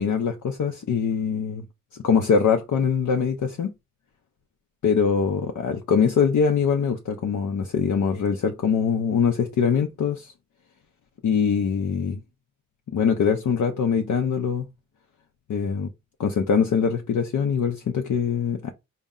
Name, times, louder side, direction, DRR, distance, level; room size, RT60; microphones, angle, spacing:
voice 1, 0.0-1.7 1.9-3.7 4.8-10.3 11.2-12.2 12.9-14.7 15.5-15.9 16.2-18.7, left 6 dB, 60° left, 0.6 m, -23 dB
4.1 x 2.1 x 3.7 m
cardioid pair, 70°, 34 cm